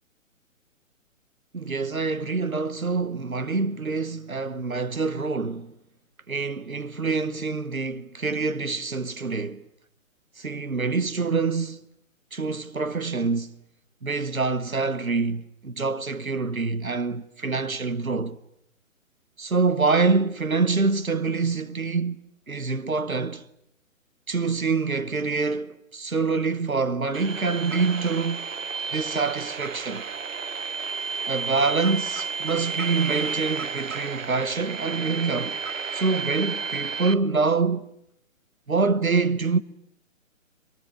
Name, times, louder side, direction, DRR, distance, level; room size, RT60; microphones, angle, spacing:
voice 1, 1.5-5.7 6.3-9.7 10.4-11.8 12.3-13.6 14.0-18.4 19.4-23.4 24.3-28.5 28.9-30.1 31.3-35.6 35.9-37.9 38.7-39.6, right 4 dB, 90° right, 1.2 m, -26 dB
sound 1, 27.1-37.1, right 5 dB, 70° right, 1.0 m, -32 dB
23.5 x 23.5 x 9.5 m
figure-of-eight pair, 130°, 40 cm